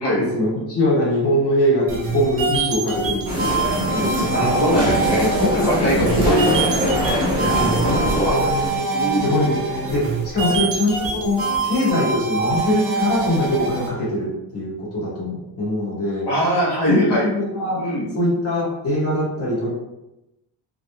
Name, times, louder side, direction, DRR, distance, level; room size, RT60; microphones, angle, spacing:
voice 1, 0.2-4.5 5.4-6.2 7.4-7.9 8.3-8.9 9.2-16.3 16.9-17.8 18.1-19.7, left 1 dB, 35° left, -7 dB, 1.1 m, -22 dB
sound 1, 1.9-13.9, right 4 dB, 30° right, 0.6 m, -25 dB
sound 2, 3.3-8.8, equal, 10° right, 1.1 m, -23 dB
voice 2, 4.3-5.3 5.5-6.8 7.5-8.4 8.9-9.3 10.5-10.6 16.2-17.3 17.8-18.1, equal, 70° left, -5 dB, 1.0 m, -22 dB
3.2 x 2.5 x 2.7 m, 0.93 s
wide cardioid pair, 180°, 43 cm